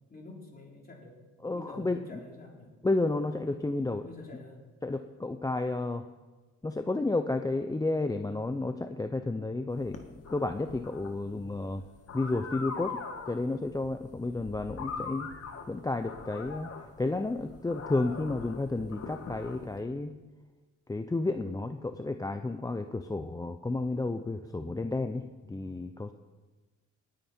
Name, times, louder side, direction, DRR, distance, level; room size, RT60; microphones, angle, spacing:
voice 1, 0.1-2.7 4.0-4.7 14.9-15.2, left 2 dB, 30° left, -1 dB, 3.7 m, -48 dB
voice 2, 1.4-2.0 2.8-4.1 4.8-6.0 6.6-11.8 12.1-15.3 15.7-16.7 17.0-20.1 20.9-26.1, left 2 dB, 10° left, 8 dB, 0.6 m, -31 dB
sound 1, 9.7-19.8, left 5 dB, 55° left, 1.7 m, -42 dB
19.0 x 9.0 x 4.4 m, 1.2 s
cardioid pair, 90°, 30 cm